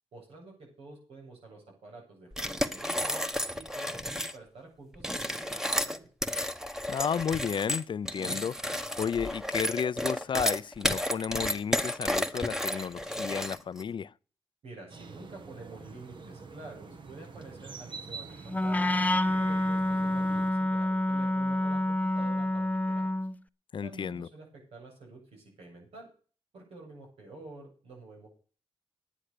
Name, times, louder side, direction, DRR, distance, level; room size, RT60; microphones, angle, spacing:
voice 1, 0.1-3.2 3.5-6.1 14.6-23.1 23.8-26.1 26.5-28.3, right 3 dB, 90° right, 7.8 m, -49 dB
sound 1, 2.3-4.4 4.9-13.8, equal, 5° right, 1.2 m, -32 dB
voice 2, 6.9-14.1 23.7-24.3, left 7 dB, 55° left, 0.5 m, -33 dB
sound 2, 14.9-20.5, right 4 dB, 55° right, 1.5 m, -46 dB
Wind instrument woodwind instrument, 18.5-23.4, left 1 dB, 15° left, 0.6 m, -28 dB
10.5 x 10.0 x 6.6 m
cardioid pair, 75°, 10 cm